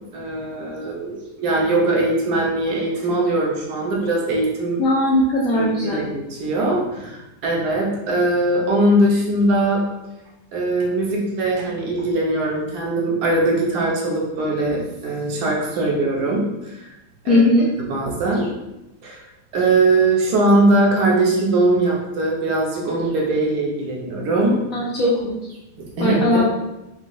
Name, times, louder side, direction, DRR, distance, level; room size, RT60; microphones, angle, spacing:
voice 1, 0.1-4.8 5.5-9.8 10.5-16.9 17.2-17.4 17.9-18.5 19.0-19.2 19.5-24.6 25.8-26.4, right 2 dB, 65° right, -2 dB, 1.1 m, -21 dB
voice 2, 4.8-6.0 17.3-17.7 24.7-25.3 26.0-26.4, left 1 dB, 75° left, -5 dB, 0.7 m, -18 dB
3.9 x 2.2 x 2.5 m, 0.95 s
omnidirectional pair, 2.0 m